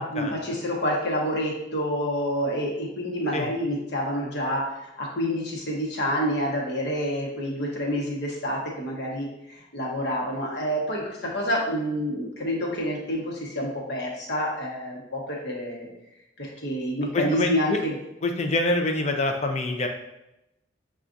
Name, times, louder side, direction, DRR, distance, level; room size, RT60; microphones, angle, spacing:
voice 1, 0.0-15.9 16.4-17.9, equal, 55° left, -2 dB, 1.0 m, -28 dB
voice 2, 17.1-17.8 18.2-19.9, left 2 dB, 35° left, 4 dB, 0.4 m, -25 dB
7.0 x 2.4 x 2.5 m, 0.89 s
head